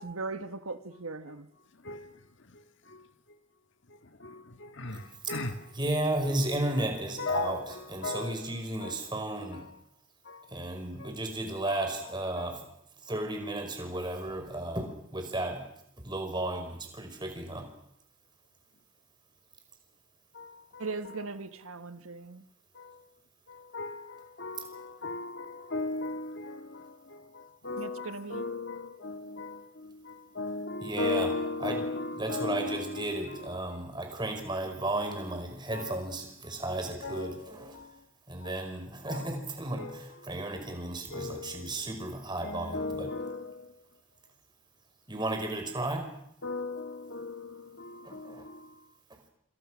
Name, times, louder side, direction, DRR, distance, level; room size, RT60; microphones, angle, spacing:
voice 1, 0.0-1.5 20.8-22.4 27.8-28.4, right 3 dB, 85° right, 1.5 m, -38 dB
voice 2, 5.7-7.6 7.9-9.6 10.5-12.6 13.1-15.6 16.0-17.7 30.8-31.3 31.6-31.8 32.2-37.7 38.3-43.1 45.1-46.1 48.0-48.4, right 1 dB, 20° right, 5.0 m, -34 dB
voice 3, 7.2-7.7 8.0-8.3 8.8-8.9 11.7-11.8 23.7-24.0 24.4-24.6 25.0-25.4 25.7-26.6 27.6-28.0 28.3-28.7 29.0-29.5 30.4-33.1 35.7-35.9 37.0-37.3 39.1-39.2 39.8-39.9 41.1-41.5 42.4-43.4 46.4-47.4, left 3 dB, 60° left, 1.8 m, -34 dB
27.5 x 26.5 x 6.3 m
head